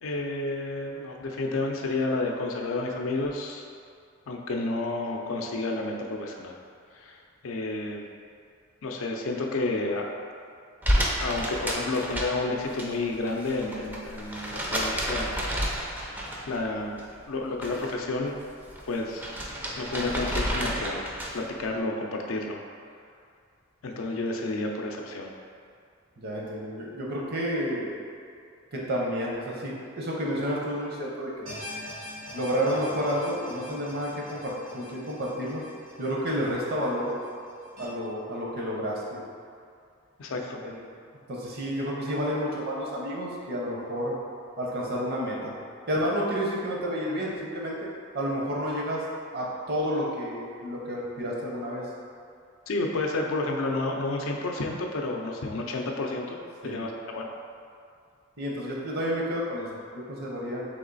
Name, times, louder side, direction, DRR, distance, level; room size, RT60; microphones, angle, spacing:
voice 1, 0.0-3.6 4.3-6.6 6.9-7.2 7.4-8.0 8.8-10.2 11.2-15.3 16.5-17.0 17.3-18.4 18.9-19.3 19.8-22.6 23.8-25.3 40.2-40.6 52.7-56.4 56.6-57.3, left 2 dB, 85° left, 1 dB, 0.5 m, -30 dB
sound 1, 10.8-12.9 13.1-16.6 17.0-17.9 18.3-21.5, equal, 10° right, 0.4 m, -30 dB
voice 2, 26.2-27.9 28.7-31.5 32.3-35.6 36.0-37.1 37.8-39.2 40.6-40.8 41.3-44.1 44.6-45.5 45.9-47.9 48.1-49.0 49.3-51.8 56.6-56.8 58.4-60.6, equal, 50° right, -3 dB, 0.8 m, -30 dB
sound 2, 31.5-37.8, left 1 dB, 80° right, 1.4 m, -44 dB
3.5 x 3.0 x 3.9 m, 2.4 s
head